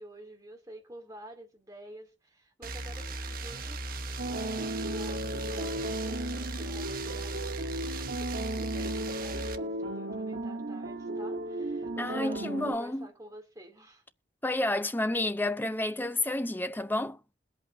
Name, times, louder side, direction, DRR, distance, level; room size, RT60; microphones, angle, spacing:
voice 1, 0.0-3.8 4.2-14.0, right 1 dB, 20° right, 3.0 m, -49 dB
sound 1, 2.6-9.6, right 2 dB, 50° right, 0.9 m, -37 dB
sound 2, 4.2-12.7, right 1 dB, 85° right, 1.4 m, -35 dB
voice 2, 12.0-13.1 14.4-17.2, left 1 dB, 10° left, 0.6 m, -30 dB
21.5 x 8.3 x 2.8 m
head